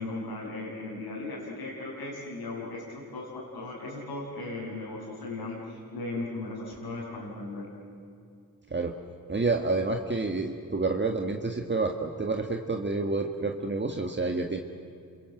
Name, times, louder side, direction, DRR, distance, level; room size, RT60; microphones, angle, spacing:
voice 1, 0.0-7.7, left 2 dB, 80° left, -8 dB, 6.2 m, -37 dB
voice 2, 9.3-14.6, right 3 dB, 30° right, 3 dB, 1.8 m, -29 dB
27.5 x 22.5 x 7.9 m, 2.5 s
cardioid pair, 55°, 39 cm